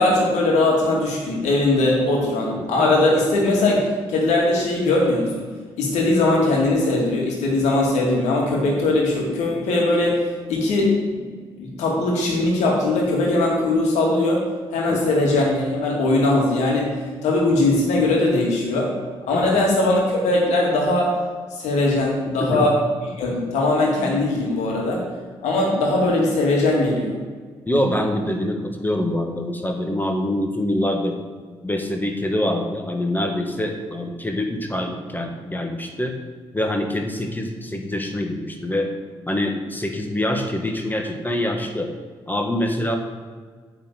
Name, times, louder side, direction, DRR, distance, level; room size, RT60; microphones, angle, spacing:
voice 1, 0.0-5.5 5.8-11.3 11.6-14.4 14.7-16.9 17.2-18.9 19.3-21.1 21.5-22.8 23.2-25.0 25.4-27.1, left 2 dB, 70° left, -2 dB, 2.1 m, -20 dB
voice 2, 2.6-2.9 14.9-15.2 19.3-19.6 22.4-22.7 27.7-31.2 31.6-36.1 36.5-38.9 39.3-41.9 42.3-43.0, left 1 dB, 15° left, 3 dB, 1.4 m, -25 dB
9.0 x 4.2 x 6.7 m, 1.5 s
hypercardioid pair, 40°, 12 cm